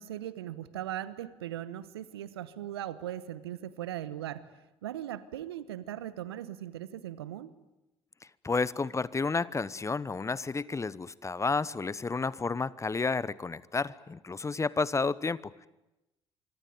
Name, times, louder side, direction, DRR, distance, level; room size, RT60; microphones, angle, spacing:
voice 1, 0.0-7.6, right 12 dB, 80° right, 17 dB, 1.1 m, -39 dB
voice 2, 8.4-15.7, left 4 dB, 25° left, 20 dB, 1.0 m, -31 dB
25.5 x 24.5 x 9.2 m, 0.96 s
hypercardioid pair, 50°, 13 cm